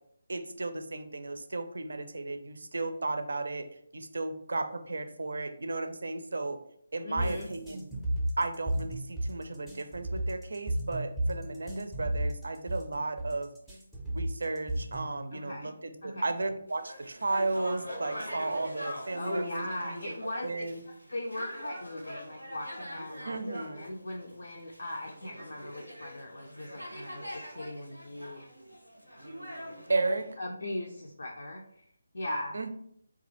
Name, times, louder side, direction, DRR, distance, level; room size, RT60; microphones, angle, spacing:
voice 1, 0.3-3.7 3.9-6.6 6.9-7.9 8.4-13.5 14.1-20.8 23.2-23.9 29.9-30.3 32.5-32.7, right 3 dB, 60° right, 8 dB, 0.4 m, -34 dB
voice 2, 7.0-7.5 15.3-15.7 16.0-16.3 19.2-20.5 21.1-23.5 23.7-28.4 30.4-31.9 32.1-32.6, left 1 dB, 60° left, 0 dB, 0.4 m, -39 dB
sound 1, 7.2-15.2, right 1 dB, ahead, 0.5 m, -33 dB
sound 2, 16.7-30.3, equal, 90° left, 0.8 m, -43 dB
3.2 x 2.3 x 3.0 m, 0.69 s
figure-of-eight pair, 150°, 0 cm